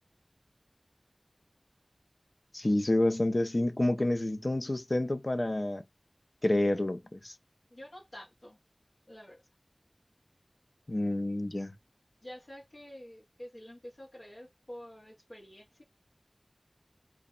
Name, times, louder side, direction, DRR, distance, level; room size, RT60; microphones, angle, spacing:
voice 1, 2.5-5.8 6.4-7.3 10.9-11.8, left 1 dB, 55° left, 0.5 m, -28 dB
voice 2, 7.7-8.6 9.1-9.4 12.2-15.8, equal, 90° left, 0.8 m, -48 dB
2.1 x 2.0 x 3.6 m
wide cardioid pair, 40°, 0 cm